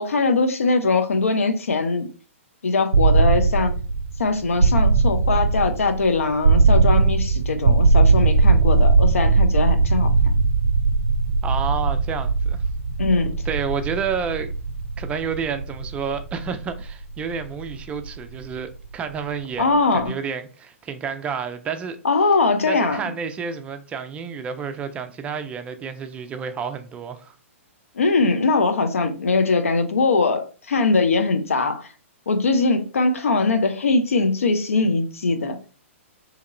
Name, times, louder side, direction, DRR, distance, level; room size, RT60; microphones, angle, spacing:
voice 1, 0.0-2.1 2.6-3.7 4.2-10.1 13.0-13.3 19.6-20.1 22.0-23.0 27.9-31.9 32.3-35.6, left 3 dB, 80° left, 0.6 m, -21 dB
sound 1, 2.9-18.8, right 4 dB, 90° right, 0.5 m, -19 dB
voice 2, 11.4-12.6 13.5-14.5 15.0-22.0 22.7-27.3, right 6 dB, 15° right, 0.3 m, -30 dB
3.9 x 2.9 x 2.5 m
hypercardioid pair, 130°, 7 cm